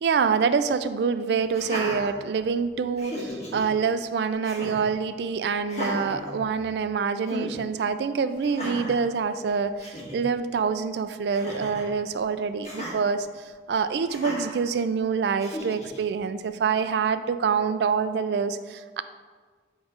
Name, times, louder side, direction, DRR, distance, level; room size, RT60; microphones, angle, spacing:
voice 1, 0.0-19.0, right 5 dB, 70° right, 12 dB, 0.3 m, -26 dB
Laughter, 1.5-2.6 3.0-3.6 4.4-4.9 5.6-6.9 7.3-7.5 8.4-9.0 9.5-9.6 9.8-10.2 11.3-11.9 12.6-13.0 14.1-14.6 15.4-16.0, equal, 40° left, 1.4 m, -35 dB
7.2 x 3.1 x 5.0 m, 1.5 s
head